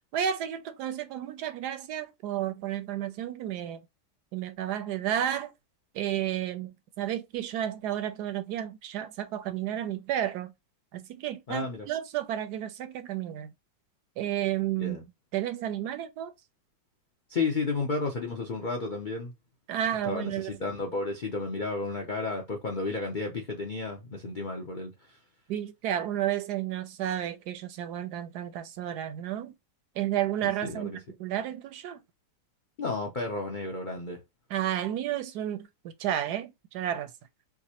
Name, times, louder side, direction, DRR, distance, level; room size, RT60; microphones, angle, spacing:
voice 1, 0.1-3.8 4.3-5.5 5.9-10.5 10.9-13.5 14.2-15.0 15.3-16.3 19.7-20.6 25.5-29.5 30.0-32.0 34.5-37.1, right 11 dB, 75° right, 1.0 m, -32 dB
voice 2, 11.5-11.9 14.8-15.0 17.3-19.3 20.1-24.9 30.6-31.0 32.8-34.2, left 3 dB, 85° left, 0.4 m, -32 dB
4.8 x 2.1 x 2.8 m
omnidirectional pair, 1.9 m